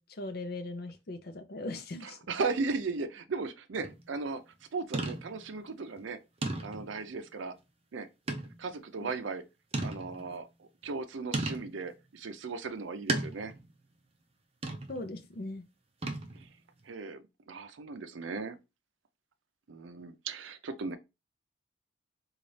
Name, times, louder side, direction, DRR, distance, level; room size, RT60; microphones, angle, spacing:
voice 1, 0.0-2.2 9.0-9.1 14.9-15.7, left 2 dB, 55° left, 0.5 m, -39 dB
voice 2, 2.0-4.4 4.7-6.2 6.6-7.5 7.9-8.1 8.6-9.4 9.8-13.5 16.4-16.5 16.9-18.6 19.7-21.0, right 4 dB, 80° right, 0.5 m, -37 dB
sound 1, 3.8-4.1 4.9-5.5 6.0-6.1 6.4-7.0 8.3-8.6 9.1-9.2 9.7-10.4 11.3-11.8 13.1-13.7 14.6-15.1 16.0-16.5, right 2 dB, 30° right, 0.5 m, -35 dB
4.0 x 2.3 x 3.2 m
head